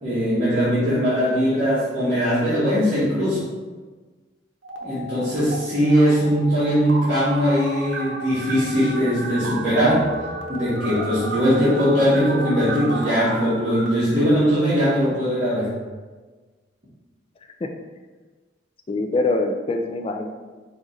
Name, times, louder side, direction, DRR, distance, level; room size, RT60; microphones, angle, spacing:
voice 1, 0.0-3.5 4.8-10.1 10.5-15.7, equal, 35° right, -13 dB, 1.3 m, -20 dB
sound 1, 4.6-5.6 5.9-13.9, right 1 dB, 85° right, 0.7 m, -33 dB
voice 2, 18.9-20.3, left 2 dB, 30° left, 4 dB, 0.3 m, -24 dB
4.8 x 2.4 x 4.0 m, 1.3 s
head